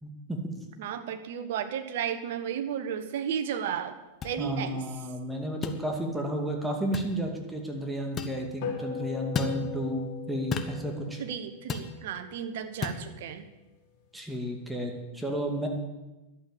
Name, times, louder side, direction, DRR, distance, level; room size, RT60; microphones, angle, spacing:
voice 1, 0.0-0.6 4.4-11.2 14.1-15.7, equal, 5° right, 1 dB, 2.4 m, -32 dB
voice 2, 0.8-4.0 4.2-4.8 11.2-13.4, right 8 dB, 65° right, 9 dB, 1.3 m, -33 dB
sound 1, 4.2-4.4 5.6-5.8 6.9-7.1 8.2-8.4 9.3-9.6 10.5-10.8 11.7-11.9 12.8-13.0, left 5 dB, 30° left, 1.4 m, -32 dB
sound 2, 8.6-13.3, left 7 dB, 55° left, 3.5 m, -40 dB
12.0 x 8.0 x 9.1 m, 1.0 s
hypercardioid pair, 95°, 0 cm